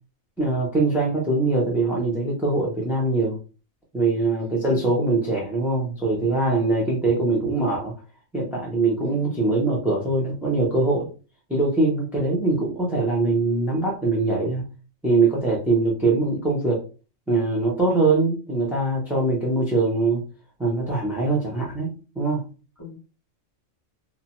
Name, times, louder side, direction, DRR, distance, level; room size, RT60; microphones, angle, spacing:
voice 1, 0.4-3.4 3.9-7.9 8.3-11.1 11.5-14.6 15.0-16.8 17.3-20.2 20.6-22.4, right 3 dB, ahead, -4 dB, 0.4 m, -22 dB
voice 2, 4.4-5.0 9.0-9.4 22.8-23.0, left 4 dB, 15° left, -4 dB, 0.9 m, -42 dB
2.8 x 2.0 x 3.0 m, 0.34 s
omnidirectional pair, 1.4 m